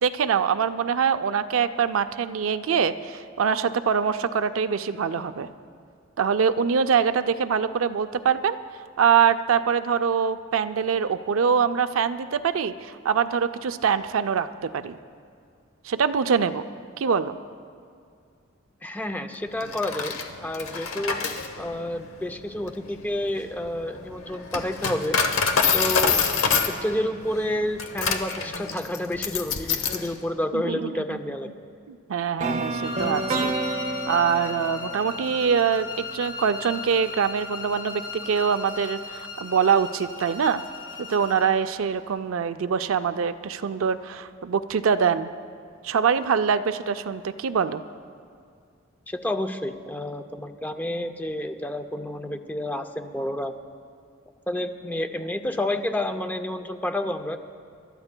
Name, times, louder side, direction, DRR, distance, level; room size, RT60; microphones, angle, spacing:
voice 1, 0.0-5.5 6.2-8.6 9.0-15.0 15.8-16.6 17.0-17.3 30.5-31.2 31.9-33.5 34.1-40.6 41.0-45.3 45.8-47.8, right 6 dB, 70° right, 10 dB, 0.4 m, -24 dB
voice 2, 18.8-21.2 21.6-25.2 25.7-26.2 26.6-31.5 49.1-53.5 54.5-57.4, left 1 dB, 10° left, 8 dB, 0.5 m, -29 dB
Coin (dropping), 19.6-30.1, left 5 dB, 80° left, 0.9 m, -26 dB
sound 1, 32.4-36.4, right 2 dB, 35° right, 0.8 m, -30 dB
sound 2, 32.8-41.5, left 4 dB, 60° left, 1.6 m, -37 dB
27.5 x 13.0 x 2.2 m, 2.2 s
head